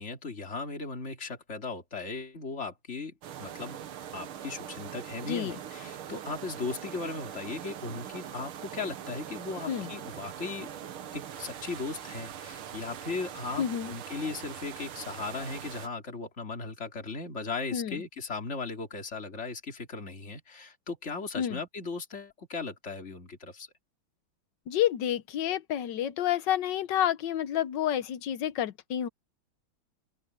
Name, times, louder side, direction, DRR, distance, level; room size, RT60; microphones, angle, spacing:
voice 1, 0.0-3.8 4.1-10.7 11.1-23.7, left 4 dB, 30° left, 3.4 m, -37 dB
sound 1, 3.2-15.9, right 9 dB, 85° right, 2.1 m, -42 dB
voice 2, 5.3-5.6 9.7-9.9 13.6-13.9 17.7-18.0 21.4-21.6 24.7-29.1, left 10 dB, 65° left, 1.4 m, -29 dB
open air
omnidirectional pair, 2.3 m